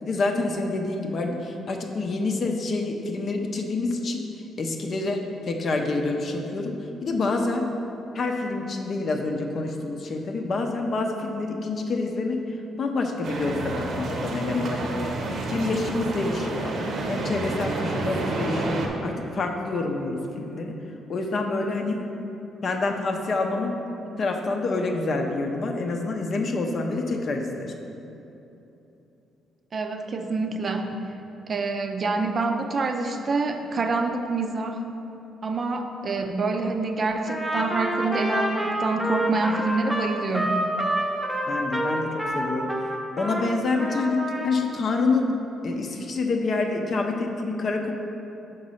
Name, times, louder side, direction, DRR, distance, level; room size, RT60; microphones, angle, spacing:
voice 1, 0.0-4.2 4.6-6.7 7.0-7.7 8.1-12.4 12.8-15.1 15.5-16.8 17.1-20.8 21.1-22.1 22.6-23.8 24.2-27.7 41.5-42.7 43.2-44.2 44.4-45.3 45.6-47.9, left 3 dB, 50° left, 3 dB, 0.6 m, -27 dB
sound 1, 13.2-18.9, right 2 dB, 65° right, 0.7 m, -29 dB
voice 2, 29.7-30.9 31.5-34.8 35.4-40.7, right 3 dB, 45° right, 5 dB, 0.5 m, -26 dB
Trumpet, 37.2-43.5 43.8-44.5, right 1 dB, 5° right, 0.7 m, -28 dB
5.2 x 3.9 x 5.5 m, 3.0 s
cardioid pair, 90°, 0 cm